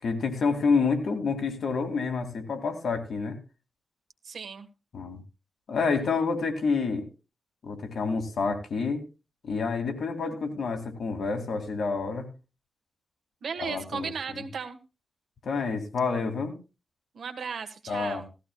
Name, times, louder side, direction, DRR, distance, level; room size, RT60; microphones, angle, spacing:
voice 1, 0.0-3.4 4.9-5.2 5.7-7.0 7.6-9.0 9.4-12.3 13.6-14.4 15.4-16.6 17.9-18.2, left 4 dB, 85° left, 4 dB, 2.2 m, -28 dB
voice 2, 4.2-4.7 13.4-14.8 17.1-18.3, right 5 dB, 85° right, 7 dB, 1.4 m, -35 dB
17.0 x 14.5 x 2.3 m, 0.29 s
wide cardioid pair, 125°, 0 cm